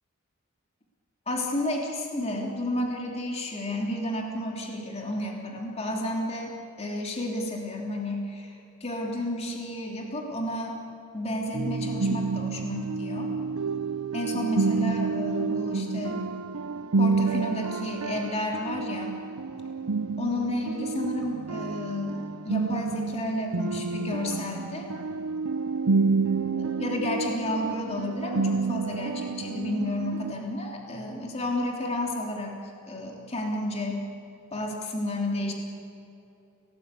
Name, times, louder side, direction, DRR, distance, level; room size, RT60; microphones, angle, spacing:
voice 1, 1.3-10.8 11.1-13.3 14.1-16.2 17.0-19.2 20.2-24.9 26.5-32.6 32.9-34.0 34.5-35.5, left 1 dB, 30° left, 0 dB, 3.1 m, -31 dB
sound 1, 11.5-30.3, right 4 dB, 75° right, 0.7 m, -29 dB
28.5 x 19.0 x 8.4 m, 2.8 s
head